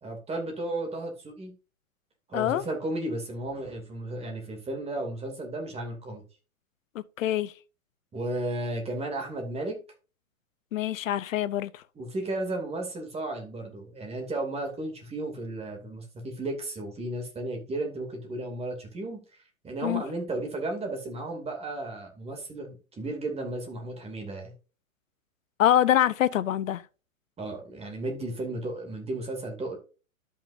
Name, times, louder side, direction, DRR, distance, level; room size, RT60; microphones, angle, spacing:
voice 1, 0.0-1.5 2.3-6.2 8.1-9.8 12.0-24.5 27.4-29.8, right 2 dB, 15° right, 2.5 m, -34 dB
voice 2, 2.3-2.6 6.9-7.5 10.7-11.8 19.8-20.0 25.6-26.8, left 12 dB, 65° left, 0.7 m, -25 dB
13.0 x 5.8 x 2.6 m
hypercardioid pair, 120°, 42 cm